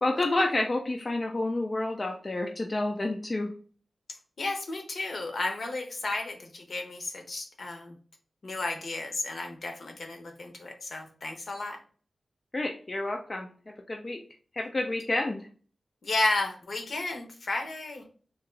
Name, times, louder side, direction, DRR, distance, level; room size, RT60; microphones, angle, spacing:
voice 1, 0.0-3.5 12.5-13.5 13.9-14.2 14.5-15.5, left 2 dB, 30° left, 2 dB, 0.4 m, -29 dB
voice 2, 4.4-8.0 8.4-11.8 16.0-18.0, left 2 dB, 60° left, 3 dB, 0.8 m, -33 dB
3.5 x 2.8 x 3.1 m, 0.42 s
wide cardioid pair, 145°, 0 cm